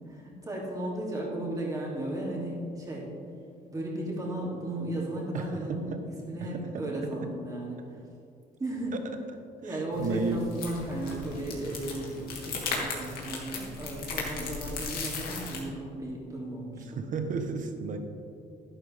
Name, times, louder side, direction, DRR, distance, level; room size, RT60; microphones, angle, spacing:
voice 1, 0.1-3.1 3.7-5.9 6.3-8.0 8.6-9.0 9.6-17.0, right 1 dB, 20° right, -5 dB, 3.0 m, -35 dB
voice 2, 5.3-6.0 6.5-7.3 9.6-10.4 17.0-18.0, right 4 dB, 50° right, 7 dB, 1.2 m, -33 dB
sound 1, 9.9-15.6, left 4 dB, 65° left, 2.5 m, -37 dB
11.5 x 11.0 x 3.6 m, 2.5 s
cardioid pair, 110°, 17 cm